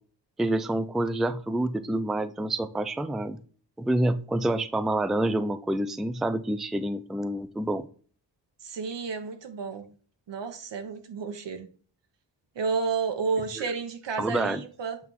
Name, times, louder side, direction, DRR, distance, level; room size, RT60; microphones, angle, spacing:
voice 1, 0.4-3.4 3.8-7.8 14.2-14.6, right 1 dB, ahead, 11 dB, 0.4 m, -27 dB
voice 2, 8.6-9.9 10.3-11.7 12.5-15.0, right 4 dB, 75° right, 7 dB, 1.4 m, -31 dB
8.2 x 3.6 x 4.6 m, 0.41 s
wide cardioid pair, 100°, 44 cm